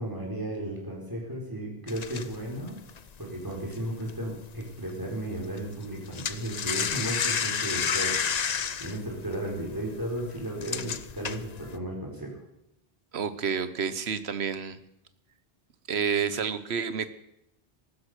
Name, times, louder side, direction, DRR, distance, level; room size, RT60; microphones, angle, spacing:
voice 1, 0.0-2.8 3.2-8.2 8.8-12.4, right 1 dB, 20° right, -1 dB, 4.5 m, -34 dB
sound 1, 1.9-4.6 4.9-5.2 5.4-11.8, left 7 dB, 45° left, 0.7 m, -31 dB
voice 2, 13.1-14.8 15.9-17.1, right 6 dB, 85° right, 13 dB, 1.2 m, -29 dB
15.0 x 12.5 x 6.7 m, 0.83 s
omnidirectional pair, 1.0 m